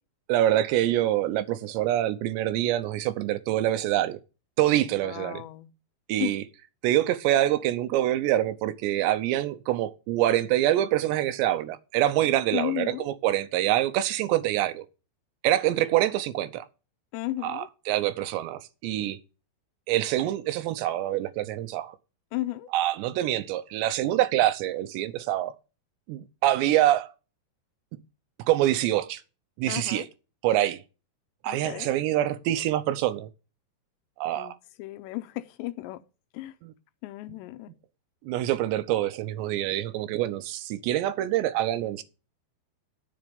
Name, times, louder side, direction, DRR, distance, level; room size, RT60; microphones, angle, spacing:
voice 1, 0.3-4.2 4.6-5.4 6.1-6.4 6.8-14.9 15.4-16.7 17.4-19.2 19.9-22.0 22.7-25.5 26.1-27.1 28.4-29.2 29.6-30.1 30.4-30.8 31.4-33.3 34.2-34.6 36.6-36.7 38.2-42.0, right 13 dB, 85° right, 2.9 m, -25 dB
voice 2, 5.0-5.7 6.2-6.4 12.5-13.1 17.1-17.7 22.3-22.7 29.7-30.1 31.5-31.9 34.4-34.5 34.8-36.0 36.3-36.5 37.0-37.7, left 16 dB, 85° left, 2.9 m, -34 dB
11.0 x 7.4 x 5.2 m
omnidirectional pair, 5.0 m